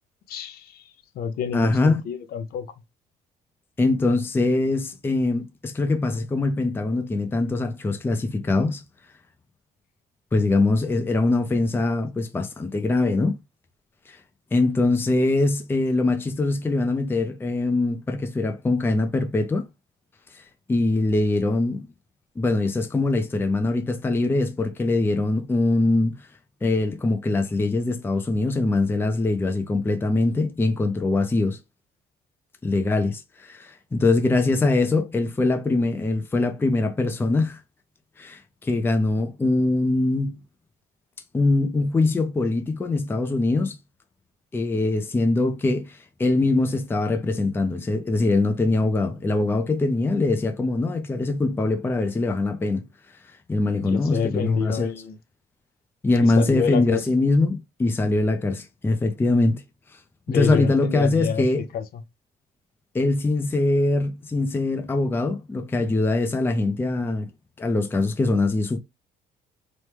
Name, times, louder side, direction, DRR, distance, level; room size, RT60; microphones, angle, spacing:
voice 1, 0.3-0.7 1.2-2.7 53.8-55.1 56.2-57.0 60.3-61.4 61.7-61.8, left 7 dB, 65° left, 0.5 m, -27 dB
voice 2, 1.5-2.0 3.8-8.8 10.3-13.4 14.1-14.2 14.5-19.7 20.7-21.9 22.4-26.2 26.6-31.6 32.6-37.6 38.2-40.4 41.3-43.8 44.5-52.8 53.5-55.0 56.0-59.6 60.3-61.7 62.9-67.3 67.6-68.8, left 2 dB, 15° left, 0.5 m, -23 dB
3.0 x 2.1 x 3.2 m
cardioid pair, 110°, 17 cm